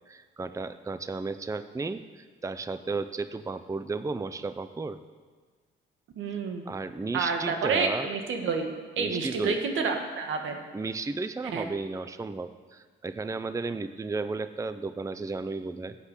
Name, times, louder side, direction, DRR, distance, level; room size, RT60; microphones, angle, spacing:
voice 1, 0.1-5.0 6.7-8.1 9.0-9.6 10.7-16.0, right 3 dB, 15° right, 11 dB, 0.6 m, -34 dB
voice 2, 6.2-6.7 7.1-10.6 11.5-11.6, right 5 dB, 80° right, 4 dB, 2.0 m, -29 dB
15.0 x 8.4 x 8.4 m, 1.5 s
cardioid pair, 90°, 20 cm